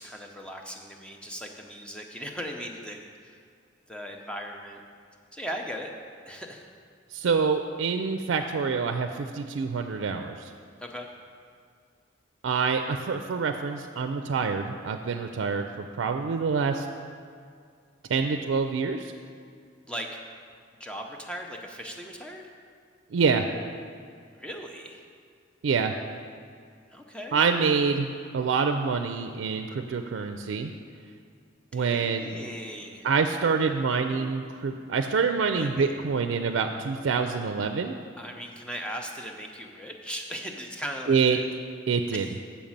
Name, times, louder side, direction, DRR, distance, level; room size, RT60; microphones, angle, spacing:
voice 1, 0.0-3.4 3.9-4.8 5.3-5.9 6.3-6.7 10.8-11.1 19.9-20.1 20.8-22.4 24.3-25.0 26.9-27.4 31.7-33.1 35.5-35.9 38.2-41.5 42.1-42.3, equal, 5° left, 2 dB, 0.6 m, -38 dB
voice 2, 7.1-10.4 12.4-16.9 18.1-19.1 23.1-23.5 25.6-25.9 27.3-28.1 28.3-30.7 31.7-32.4 33.0-37.9 41.1-41.4 41.9-42.3, right 5 dB, 85° right, 6 dB, 0.4 m, -26 dB
7.1 x 5.2 x 7.3 m, 2.2 s
head